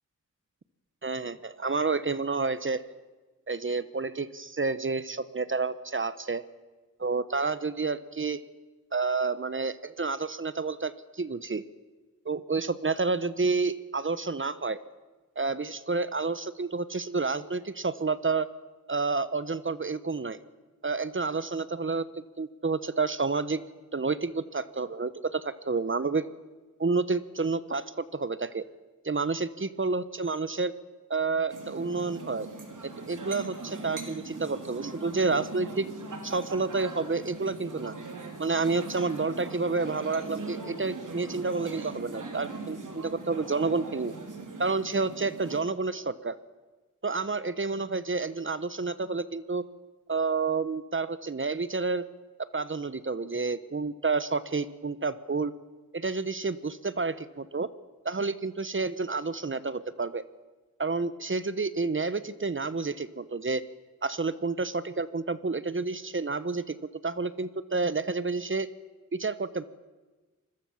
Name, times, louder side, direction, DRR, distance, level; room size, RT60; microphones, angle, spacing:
voice 1, 1.0-2.8 3.5-6.4 7.0-8.4 8.9-11.6 12.2-14.8 15.4-18.5 18.9-20.4 20.8-22.1 22.4-23.6 23.9-26.3 26.8-28.6 29.0-30.7 31.1-32.5 32.8-35.9 36.2-38.0 38.4-44.1 44.6-46.4 47.0-49.6 50.1-52.0 52.5-55.5 55.9-57.7 58.0-60.2 60.8-63.6 64.0-66.8 67.0-68.7 69.1-69.6, right 4 dB, 40° right, 15 dB, 1.1 m, -29 dB
sound 1, 31.5-45.6, right 3 dB, 75° right, 3.5 m, -40 dB
25.5 x 21.5 x 7.3 m, 1.2 s
cardioid pair, 55°, 32 cm